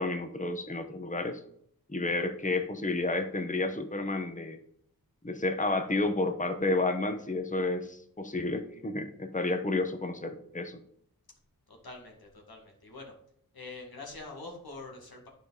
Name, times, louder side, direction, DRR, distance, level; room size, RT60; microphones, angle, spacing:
voice 1, 0.0-1.4 1.9-4.6 5.2-10.8, left 2 dB, 20° left, 7 dB, 1.0 m, -31 dB
voice 2, 11.7-13.1 13.5-15.3, left 3 dB, 80° left, 0 dB, 2.1 m, -45 dB
9.8 x 5.1 x 4.0 m, 0.67 s
cardioid pair, 40°, 36 cm